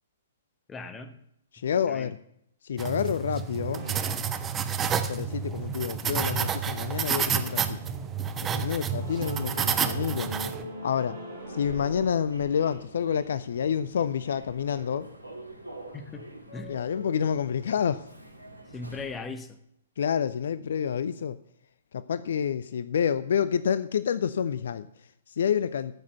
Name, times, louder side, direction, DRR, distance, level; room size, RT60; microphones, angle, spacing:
voice 1, 0.7-1.1 1.9-2.1 15.9-16.7 18.7-19.6, left 3 dB, 15° left, 9 dB, 1.3 m, -39 dB
voice 2, 1.5-2.2 2.6-3.9 5.1-7.8 8.4-10.3 10.8-11.2 11.5-15.1 16.7-18.1 20.0-21.4 21.9-25.9, left 8 dB, 55° left, 16 dB, 0.5 m, -28 dB
sound 1, 2.8-10.6, right 7 dB, 15° right, 0.8 m, -30 dB
sound 2, 3.7-3.9 5.1-12.1, right 1 dB, 45° right, 3.9 m, -43 dB
Human voice / Subway metro underground, 11.3-19.3, right 1 dB, 90° left, 2.4 m, -45 dB
13.5 x 7.3 x 6.8 m, 0.74 s
figure-of-eight pair, 115°, 0 cm